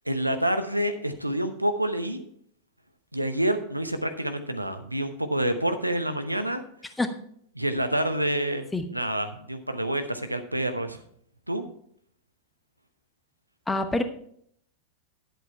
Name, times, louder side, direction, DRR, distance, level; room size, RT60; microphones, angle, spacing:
voice 1, 0.1-2.2 3.1-6.6 7.5-8.7 8.9-11.0 11.5-11.6, right 1 dB, 85° right, 8 dB, 0.9 m, -27 dB
voice 2, 13.7-14.0, left 2 dB, 10° left, 8 dB, 1.0 m, -25 dB
10.5 x 8.1 x 4.6 m, 0.66 s
figure-of-eight pair, 90°, 0 cm